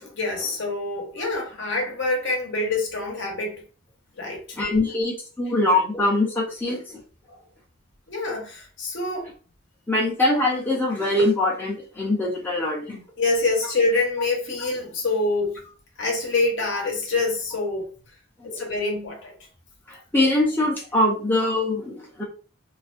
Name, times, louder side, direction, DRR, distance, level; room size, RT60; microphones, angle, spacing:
voice 1, 0.1-3.6 4.2-4.4 7.3-7.4 8.1-9.3 13.2-15.6 16.0-17.9 18.4-19.3, left 2 dB, 60° left, 0.7 m, -26 dB
voice 2, 4.6-6.8 9.9-13.0 18.4-18.7 19.9-22.2, left 1 dB, 10° left, 0.4 m, -23 dB
2.4 x 2.1 x 2.4 m
head